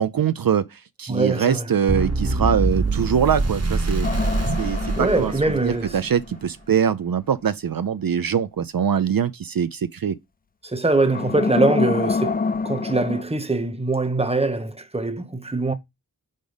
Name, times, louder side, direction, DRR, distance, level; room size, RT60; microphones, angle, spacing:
voice 1, 0.0-4.1 4.6-10.2, right 8 dB, 70° right, 0.5 m, -23 dB
voice 2, 1.1-1.7 5.0-6.0 10.6-15.7, right 2 dB, 15° right, 1.0 m, -23 dB
sound 1, 1.9-6.0, right 2 dB, 45° right, 1.2 m, -24 dB
sound 2, 4.0-6.4 11.1-13.2, left 4 dB, 25° left, 0.4 m, -27 dB
5.2 x 5.1 x 3.9 m
wide cardioid pair, 45°, 37 cm